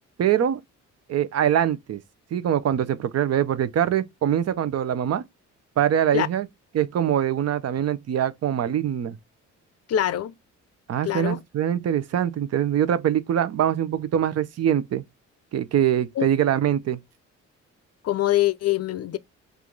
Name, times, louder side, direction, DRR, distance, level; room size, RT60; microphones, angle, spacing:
voice 1, 0.2-0.6 1.1-2.0 2.3-5.2 5.8-6.5 6.7-9.2 10.9-15.0 15.5-17.0, right 10 dB, 55° right, 0.7 m, -23 dB
voice 2, 9.9-10.3 11.0-11.4 16.2-16.3 18.0-19.2, left 12 dB, 55° left, 0.5 m, -23 dB
3.5 x 2.6 x 4.4 m
cardioid pair, 90°, 30 cm